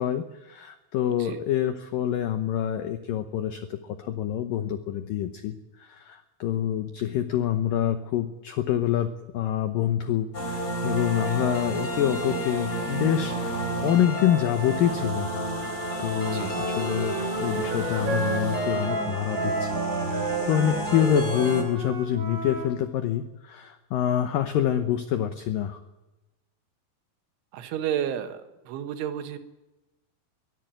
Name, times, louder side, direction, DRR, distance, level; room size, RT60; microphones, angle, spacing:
voice 1, 0.0-15.3 16.0-19.7 20.0-25.8, left 10 dB, 90° left, 9 dB, 1.9 m, -26 dB
sound 1, 10.3-21.6, right 1 dB, 20° left, 3.3 m, -30 dB
Wind instrument woodwind instrument, 16.1-22.7, right 3 dB, 70° right, 5.6 m, -32 dB
voice 2, 16.3-16.6 27.5-29.4, right 10 dB, 90° right, 8 dB, 3.9 m, -31 dB
23.0 x 13.5 x 9.1 m, 1.1 s
omnidirectional pair, 5.4 m